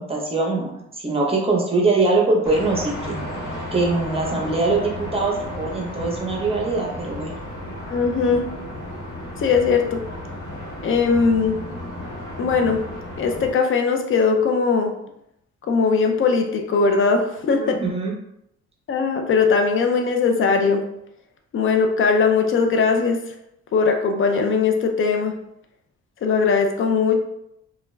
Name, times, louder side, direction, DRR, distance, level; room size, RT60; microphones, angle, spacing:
voice 1, 0.0-3.1 3.7-7.4 17.5-18.1, right 3 dB, 20° right, -1 dB, 0.7 m, -22 dB
sound 1, 2.4-13.5, left 1 dB, 65° left, 1.1 m, -33 dB
voice 2, 7.9-8.5 9.4-10.0 10.8-11.6 12.4-12.8 13.2-14.9 15.7-17.7 18.9-20.8 21.5-23.2 23.7-25.4 26.2-27.2, left 5 dB, 45° left, 5 dB, 0.5 m, -19 dB
2.3 x 2.1 x 3.1 m, 0.79 s
cardioid pair, 90°, 30 cm